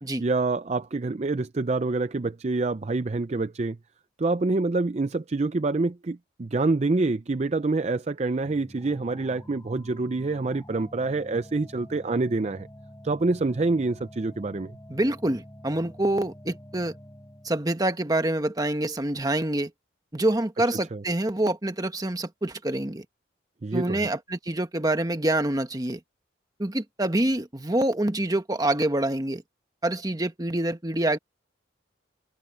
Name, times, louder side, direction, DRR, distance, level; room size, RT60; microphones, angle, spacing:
voice 1, 0.2-3.8 4.2-12.7 13.0-14.8 20.9-21.0 23.6-24.1, right 3 dB, 35° right, 0.5 m, -26 dB
sound 1, 8.4-17.7, equal, 15° left, 6.0 m, -47 dB
voice 2, 14.9-16.9 17.4-19.7 20.1-23.0 23.7-26.0 26.6-29.4 29.8-31.2, right 1 dB, 20° right, 1.2 m, -26 dB
head